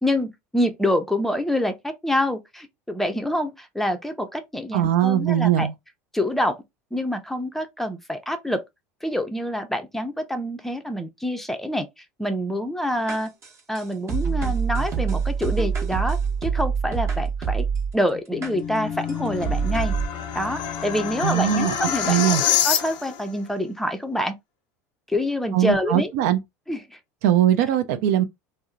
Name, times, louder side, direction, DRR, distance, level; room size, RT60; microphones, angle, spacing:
voice 1, 0.0-5.7 6.1-6.6 6.9-8.6 9.0-11.9 12.2-13.3 13.7-17.7 17.9-19.9 20.3-24.3 25.1-26.1 26.7-27.0, left 1 dB, 5° left, 0.5 m, -26 dB
voice 2, 4.7-5.7 21.2-21.7 22.1-22.4 25.5-26.4 27.2-28.2, right 11 dB, 70° right, 0.4 m, -20 dB
sound 1, 13.1-17.9 18.4-18.5 19.1-19.2 19.4-20.1, right 6 dB, 35° right, 0.9 m, -25 dB
sound 2, 18.1-23.3, left 9 dB, 60° left, 0.5 m, -27 dB
2.6 x 2.0 x 2.3 m
hypercardioid pair, 90°, 8 cm